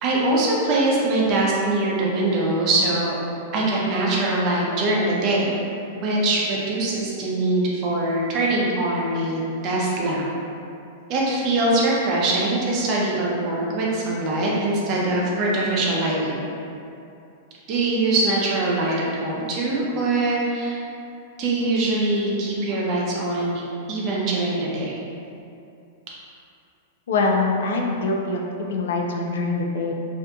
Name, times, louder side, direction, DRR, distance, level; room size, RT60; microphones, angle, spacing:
voice 1, 0.0-3.2 3.5-5.5 6.0-10.2 11.1-16.4 17.7-20.8 21.4-23.6 23.9-25.0, right 2 dB, 40° right, -4 dB, 0.5 m, -22 dB
voice 2, 27.1-28.4 28.7-29.9, left 3 dB, 80° left, 1 dB, 0.3 m, -23 dB
2.6 x 2.5 x 2.2 m, 2.6 s
hypercardioid pair, 140°, 0 cm